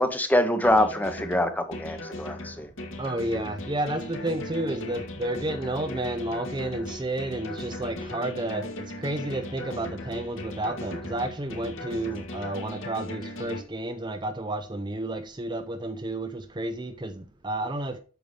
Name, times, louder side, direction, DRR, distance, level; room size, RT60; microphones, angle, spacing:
voice 1, 0.0-2.7, left 1 dB, 10° left, 0.8 m, -24 dB
sound 1, 0.6-13.6, left 1 dB, 65° left, 2.0 m, -38 dB
voice 2, 3.0-18.0, right 1 dB, 20° right, 0.5 m, -31 dB
8.8 x 6.8 x 3.3 m
head